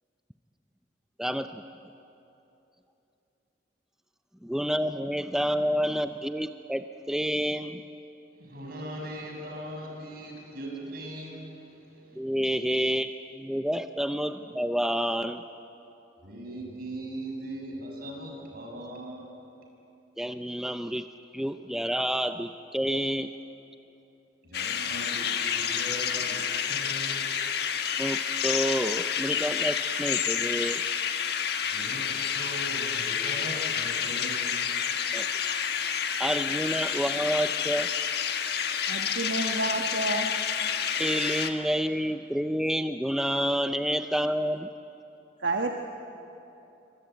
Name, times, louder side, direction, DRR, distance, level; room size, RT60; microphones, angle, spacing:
voice 1, 1.2-1.6 4.4-7.8 12.2-13.1 13.3-15.4 20.2-21.1 21.3-23.3 28.0-30.8 35.1-35.3 36.2-37.9 41.0-44.7, equal, 5° right, 8 dB, 0.5 m, -29 dB
voice 2, 8.4-12.2 12.4-13.0 16.2-19.5 24.4-27.3 31.7-34.7, right 1 dB, 55° right, 0 dB, 6.4 m, -40 dB
sound 1, 24.5-41.5, left 8 dB, 60° left, 1.5 m, -29 dB
voice 3, 38.9-40.3 45.4-45.7, right 2 dB, 75° right, 2 dB, 1.4 m, -29 dB
27.0 x 24.0 x 9.1 m, 3.0 s
head